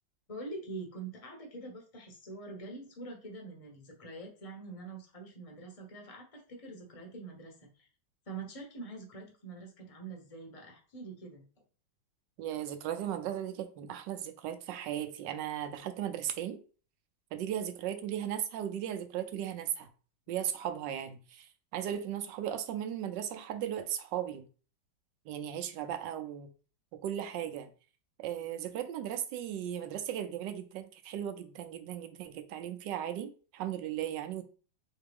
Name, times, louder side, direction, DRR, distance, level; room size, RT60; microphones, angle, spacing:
voice 1, 0.3-7.9 8.3-11.4, right 3 dB, 25° left, 0.9 m, -45 dB
voice 2, 12.4-16.6 17.3-19.9 20.3-24.4 25.3-26.5 27.0-27.7 28.2-34.4, right 10 dB, 75° right, 1.2 m, -36 dB
4.0 x 3.3 x 3.4 m
omnidirectional pair, 2.0 m